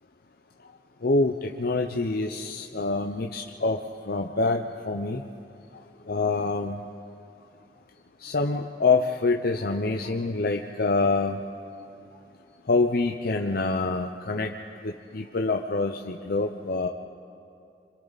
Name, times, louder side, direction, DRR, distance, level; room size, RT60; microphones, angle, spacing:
voice 1, 1.0-3.8 4.1-5.2 6.1-6.8 8.2-11.4 12.7-14.5 14.8-16.9, left 3 dB, 60° left, 3 dB, 0.7 m, -26 dB
27.5 x 26.0 x 4.1 m, 2.6 s
head